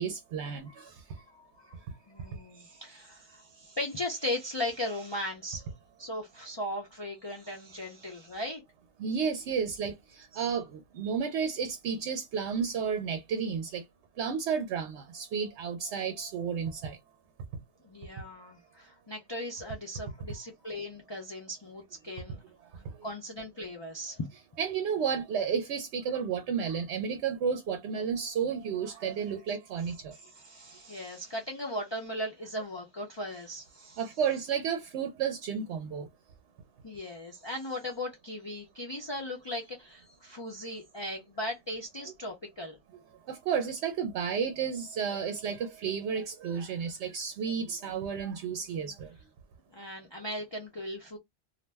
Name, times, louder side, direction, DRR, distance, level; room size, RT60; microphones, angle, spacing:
voice 1, 0.0-1.0 9.0-13.8 14.2-17.0 22.6-22.7 24.6-30.1 34.0-36.1 43.3-49.1, right 6 dB, 80° right, 0.9 m, -32 dB
voice 2, 1.2-1.8 2.1-5.7 6.0-8.6 10.3-10.4 11.0-11.2 17.8-22.4 23.0-24.2 30.1-34.0 36.8-42.8 49.7-51.2, left 1 dB, 35° left, 0.5 m, -38 dB
2.5 x 2.1 x 3.2 m
omnidirectional pair, 1.1 m